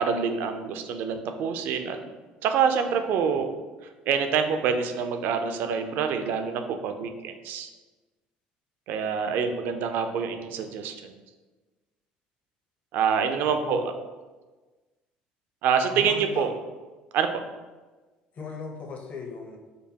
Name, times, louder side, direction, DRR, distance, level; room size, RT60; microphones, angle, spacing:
voice 1, 0.0-2.0 2.4-3.5 4.1-7.7 8.9-11.1 12.9-13.8 15.6-16.5 17.1-17.3, right 6 dB, 70° right, 7 dB, 0.4 m, -26 dB
voice 2, 9.3-9.6 13.4-13.9 15.9-16.5 18.3-19.6, left 5 dB, 40° left, 2 dB, 0.6 m, -37 dB
5.1 x 2.2 x 2.8 m, 1.3 s
supercardioid pair, 85°, 4 cm